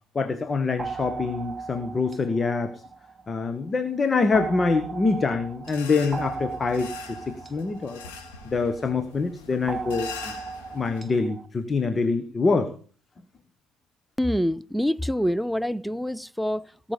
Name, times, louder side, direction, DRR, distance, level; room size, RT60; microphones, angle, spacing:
voice 1, 0.1-2.8 3.3-8.0 8.4-10.3 10.7-12.7, left 4 dB, 30° left, 1.3 m, -25 dB
sound 1, 0.8-3.6 4.3-8.9 9.7-11.5, right 4 dB, 30° right, 1.1 m, -37 dB
sound 2, 5.6-11.0, left 6 dB, 75° left, 2.9 m, -43 dB
voice 2, 14.2-16.9, equal, ahead, 0.6 m, -26 dB
19.0 x 7.4 x 5.1 m
figure-of-eight pair, 55°, 0 cm